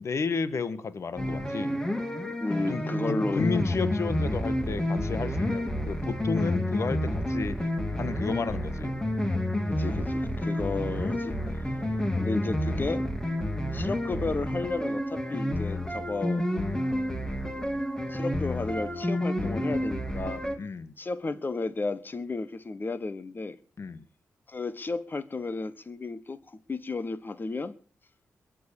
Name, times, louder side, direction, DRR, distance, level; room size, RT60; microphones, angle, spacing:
voice 1, 0.0-1.8 2.7-7.7 8.0-8.9 20.6-20.9 23.8-24.0, left 5 dB, 55° left, 1.4 m, -32 dB
sound 1, 1.2-20.6, left 1 dB, 10° left, 2.9 m, -29 dB
voice 2, 2.4-3.6 9.7-11.4 12.2-13.1 13.7-16.4 18.1-20.4 21.0-23.6 24.5-27.8, left 3 dB, 35° left, 1.4 m, -33 dB
22.0 x 7.6 x 7.3 m
cardioid pair, 75°, 6 cm